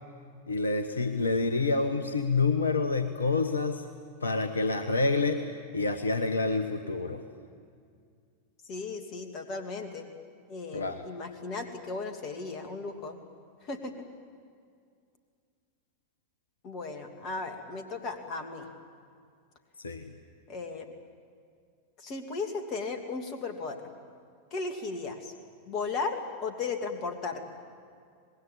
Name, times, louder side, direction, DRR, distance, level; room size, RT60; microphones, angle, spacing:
voice 1, 0.5-3.8 4.2-5.4 5.7-7.2 10.7-11.0 19.8-20.1, left 3 dB, 75° left, 9 dB, 1.1 m, -27 dB
voice 2, 8.6-10.1 10.5-13.2 13.6-13.9 16.6-18.7 20.5-20.9 22.0-23.8 24.5-25.3 25.7-27.4, left 4 dB, 35° left, 6 dB, 2.8 m, -36 dB
25.5 x 20.5 x 8.9 m, 2.2 s
figure-of-eight pair, 90°, 0 cm